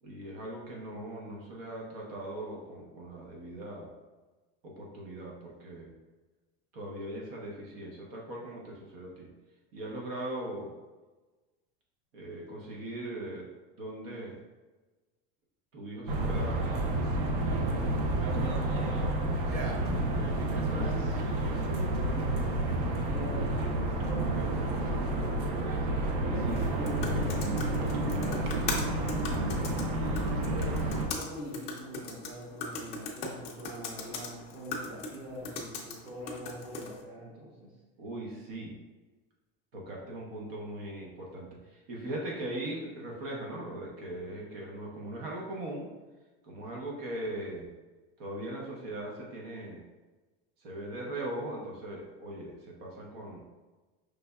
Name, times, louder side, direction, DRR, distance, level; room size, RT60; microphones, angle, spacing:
voice 1, 0.0-3.9 4.6-5.9 6.7-9.3 9.7-10.7 12.1-13.5 13.8-14.4 15.7-17.1 17.6-19.2 24.1-24.5 26.1-26.3 38.0-38.7 39.7-45.9 46.4-47.7 48.2-49.8 50.6-53.4, right 1 dB, 75° right, -2 dB, 1.0 m, -40 dB
sound 1, 16.1-31.1, right 1 dB, 55° right, 0.6 m, -30 dB
voice 2, 20.7-25.8 26.3-29.4 30.5-37.7, equal, 35° right, -5 dB, 1.1 m, -43 dB
sound 2, 26.5-37.0, left 4 dB, 20° left, 0.4 m, -40 dB
5.3 x 3.3 x 2.3 m, 1.2 s
supercardioid pair, 170°, 29 cm